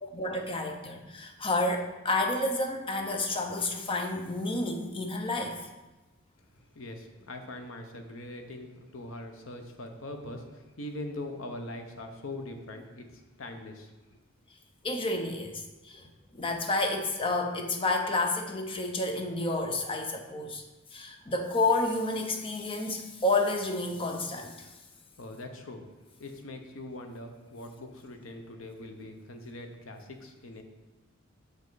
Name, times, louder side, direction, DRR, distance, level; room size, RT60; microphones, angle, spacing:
voice 1, 0.0-5.7 14.8-20.6 20.9-24.7, left 2 dB, 25° left, 4 dB, 0.6 m, -30 dB
voice 2, 6.7-14.2 25.2-25.9 26.2-30.6, left 1 dB, 70° left, 5 dB, 0.8 m, -42 dB
6.5 x 5.2 x 3.9 m, 1.1 s
head